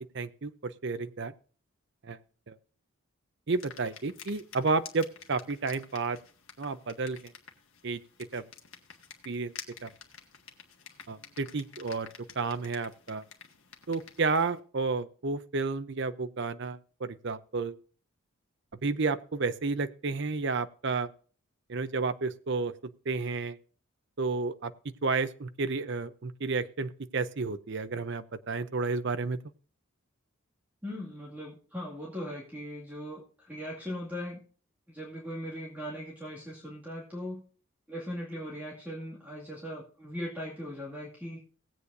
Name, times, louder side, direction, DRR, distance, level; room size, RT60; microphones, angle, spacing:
voice 1, 0.1-1.3 2.0-2.2 2.5-2.6 3.5-6.2 6.6-7.2 7.8-8.0 8.3-8.5 9.3-9.5 9.8-9.9 11.1-12.1 12.4-13.2 13.9-17.8 18.8-21.1 21.7-22.7 23.1-23.6 24.2-24.7 25.0-29.4, right 4 dB, 55° right, 13 dB, 0.6 m, -31 dB
sound 1, 3.5-14.6, left 7 dB, 65° left, 1.7 m, -50 dB
voice 2, 30.8-34.4 34.9-37.4 37.9-41.4, equal, 10° right, -5 dB, 2.2 m, -39 dB
18.0 x 8.2 x 2.7 m, 0.42 s
head